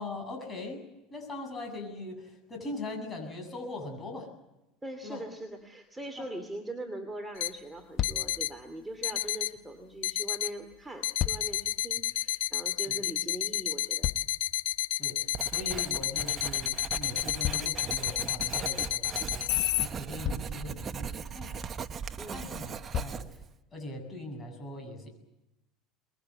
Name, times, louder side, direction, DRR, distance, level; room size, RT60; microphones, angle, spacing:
voice 1, 0.0-4.3 5.0-5.2 6.2-6.3 12.9-13.0 15.0-19.4 19.8-21.6 22.3-23.4 23.7-25.1, left 2 dB, 20° left, 4 dB, 7.7 m, -41 dB
voice 2, 4.8-14.1 22.2-22.4, right 1 dB, 10° right, 4 dB, 2.5 m, -41 dB
sound 1, 5.5-5.7 7.1-7.2 7.5-7.7 8.0-8.5 10.8-11.7 13.5-14.6 17.4-18.4 19.6-19.7 20.2-20.7 22.1-22.2 22.9-23.3 24.1-24.2, left 11 dB, 40° left, 0.9 m, -35 dB
sound 2, 7.4-7.5 8.0-8.5 9.0-9.5 10.0-10.5 11.0-19.9, left 13 dB, 85° left, 1.0 m, -30 dB
Writing, 15.3-23.5, right 6 dB, 30° right, 1.0 m, -39 dB
24.5 x 22.0 x 7.9 m, 0.96 s
supercardioid pair, 125°, 0 cm